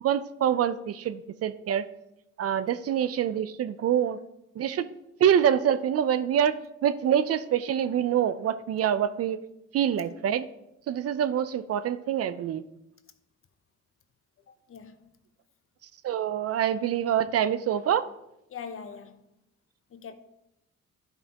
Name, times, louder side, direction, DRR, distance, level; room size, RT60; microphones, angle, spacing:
voice 1, 0.0-1.8 2.4-4.2 4.6-4.9 5.2-6.5 6.8-9.4 9.7-10.5 10.9-12.6 16.0-18.0, right 9 dB, 55° right, 0.4 m, -25 dB
voice 2, 14.5-15.1 18.5-19.2 19.9-20.1, left 6 dB, 45° left, 0.7 m, -42 dB
10.5 x 5.5 x 2.9 m
cardioid pair, 90°, 30 cm